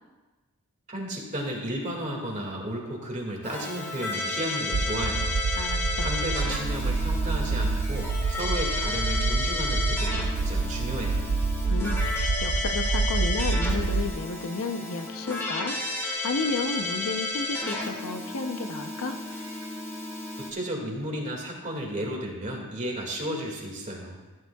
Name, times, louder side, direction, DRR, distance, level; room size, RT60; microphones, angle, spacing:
voice 1, 0.9-5.3 6.0-11.3 20.4-24.2, equal, 35° right, -1 dB, 2.0 m, -33 dB
Keyboard (musical), 3.4-20.5, left 2 dB, 10° left, 1.5 m, -32 dB
sound 1, 4.7-14.1, right 3 dB, 75° right, 0.5 m, -27 dB
voice 2, 5.5-6.1 11.7-19.2, left 3 dB, 65° left, 7 dB, 0.7 m, -32 dB
15.0 x 9.6 x 2.3 m, 1.2 s
head